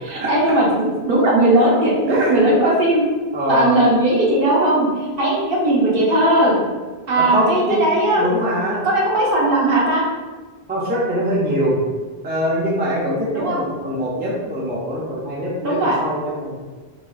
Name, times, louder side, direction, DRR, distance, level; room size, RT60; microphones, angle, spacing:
voice 1, 0.0-3.0 3.5-4.9 5.2-6.5 7.1-8.2 8.8-10.0 13.3-13.6 15.6-16.0, right 1 dB, 65° right, -4 dB, 0.9 m, -17 dB
voice 2, 3.3-3.8 7.2-7.8 8.2-8.8 10.7-11.8 12.2-16.5, equal, 15° right, -5 dB, 0.4 m, -23 dB
3.6 x 2.3 x 2.3 m, 1.3 s
omnidirectional pair, 1.0 m